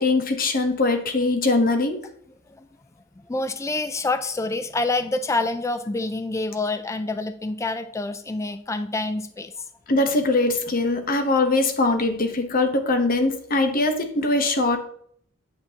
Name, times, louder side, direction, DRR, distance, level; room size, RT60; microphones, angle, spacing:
voice 1, 0.0-2.0 9.9-14.8, left 2 dB, 45° left, 6 dB, 0.9 m, -21 dB
voice 2, 3.2-9.5, left 2 dB, 15° left, 10 dB, 0.3 m, -27 dB
8.7 x 6.0 x 2.8 m, 0.63 s
head